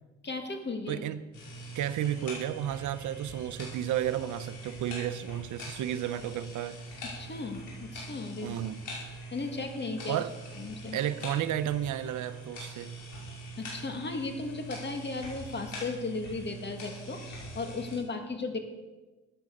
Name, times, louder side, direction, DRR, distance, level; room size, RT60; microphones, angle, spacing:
voice 1, 0.2-1.0 7.2-8.6 9.3-10.2 10.6-11.0 13.6-18.6, left 3 dB, 35° left, 2.3 m, -36 dB
voice 2, 0.9-1.2 1.7-6.8 8.4-8.8 10.1-10.3 10.9-13.0, right 11 dB, 75° right, 0.8 m, -32 dB
sound 1, 1.3-18.0, right 1 dB, 80° left, 5.7 m, -43 dB
15.0 x 9.6 x 6.6 m
cardioid pair, 90°, 30 cm